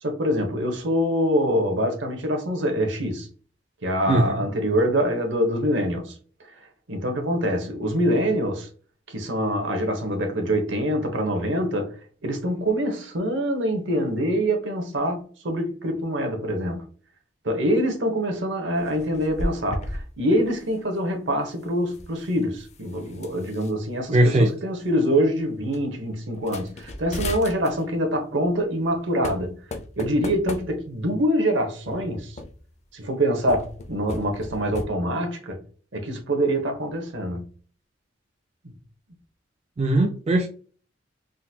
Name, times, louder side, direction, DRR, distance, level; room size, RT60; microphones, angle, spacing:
voice 1, 0.0-3.3 3.8-6.1 6.5-6.6 6.9-8.7 9.1-12.0 12.2-16.9 17.4-29.6 30.0-32.3 32.9-35.6 35.9-37.5, equal, 70° right, 0.9 m, -25 dB
voice 2, 4.1-4.4 24.1-24.5 39.8-40.5, right 1 dB, 30° right, 0.3 m, -19 dB
sound 1, 18.8-20.1 20.3-20.7 21.8-23.7 24.5-24.6 24.9-25.2 25.7-25.8 26.3-27.9 28.8-29.0 29.2-31.1 31.9-32.8 33.4-34.9, left 2 dB, 35° left, 0.4 m, -35 dB
3.7 x 2.2 x 2.7 m
head